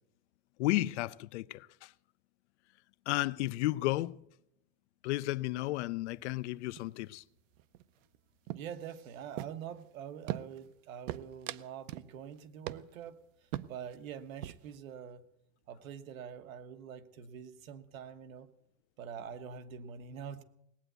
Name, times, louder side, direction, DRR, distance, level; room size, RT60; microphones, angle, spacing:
voice 1, 0.6-1.9 3.1-4.2 5.0-7.2, left 17 dB, 60° left, 0.5 m, -33 dB
sound 1, 6.1-6.5 6.8-7.1 7.4-8.2 8.5-9.8 10.3-10.7 11.1-12.1 12.4-12.5 12.7-13.1 13.5-14.0 14.3-14.7, right 14 dB, 70° right, 0.7 m, -41 dB
voice 2, 8.5-13.2 13.7-15.2 15.7-18.5 19.0-20.4, right 8 dB, 90° right, 1.4 m, -45 dB
18.5 x 9.0 x 8.1 m
supercardioid pair, 175°, 40 cm